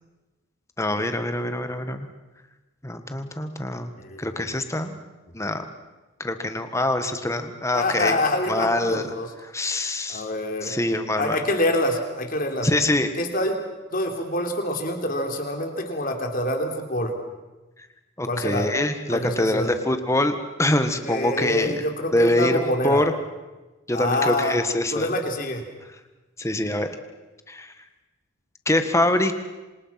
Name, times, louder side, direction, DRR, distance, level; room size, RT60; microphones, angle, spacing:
voice 1, 0.8-2.1 2.8-3.9 4.2-5.0 5.3-5.6 6.2-8.2 8.5-9.1 9.4-10.3 10.6-11.5 12.6-13.1 18.2-21.9 22.1-23.1 23.9-25.1 26.4-26.9 27.5-27.7 28.6-29.4, left 1 dB, 15° left, 8 dB, 1.7 m, -24 dB
voice 2, 4.0-4.6 7.7-9.3 10.1-12.7 13.2-13.6 13.9-17.1 18.3-18.7 19.1-19.7 21.1-23.0 23.9-24.6 24.9-25.6, left 1 dB, 45° left, 4 dB, 3.6 m, -26 dB
27.0 x 27.0 x 6.0 m, 1.1 s
head